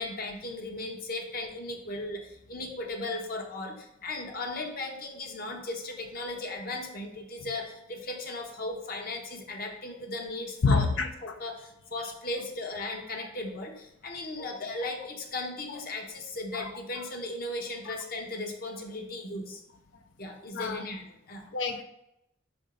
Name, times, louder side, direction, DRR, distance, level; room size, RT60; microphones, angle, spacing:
voice 1, 0.0-10.9 11.2-19.6 20.2-21.4, left 2 dB, 50° left, 2 dB, 1.0 m, -37 dB
voice 2, 10.6-11.4 14.4-14.5 16.5-16.7 17.9-18.0 20.5-20.9 21.5-21.8, left 4 dB, 75° left, 6 dB, 0.5 m, -28 dB
5.5 x 3.6 x 5.1 m, 0.84 s
head